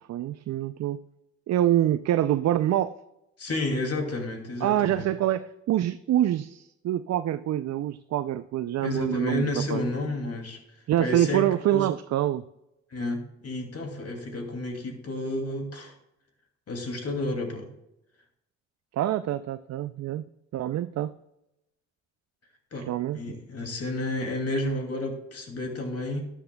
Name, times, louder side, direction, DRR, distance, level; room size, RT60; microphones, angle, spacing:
voice 1, 0.1-1.0 1.5-2.9 4.6-9.8 10.9-12.4 19.0-20.2 20.5-21.1 22.9-23.4, right 12 dB, 60° right, 12 dB, 0.5 m, -26 dB
voice 2, 3.4-5.0 8.8-10.6 11.0-11.9 12.9-15.9 16.7-17.7 22.7-22.9 23.1-26.3, left 2 dB, 55° left, 4 dB, 2.5 m, -31 dB
12.0 x 10.0 x 2.3 m, 0.87 s
supercardioid pair, 55°, 30 cm